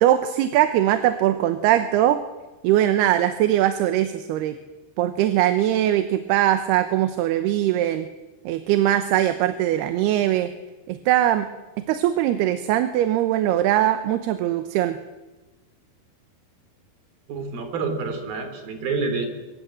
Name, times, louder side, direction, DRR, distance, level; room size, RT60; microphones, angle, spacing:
voice 1, 0.0-2.2 2.6-4.6 5.0-8.1 8.4-10.5 10.9-11.5 11.8-15.0, right 12 dB, 85° right, 10 dB, 3.0 m, -21 dB
voice 2, 17.3-19.3, right 4 dB, 65° right, 7 dB, 5.1 m, -28 dB
24.5 x 22.0 x 7.7 m, 1.1 s
omnidirectional pair, 4.6 m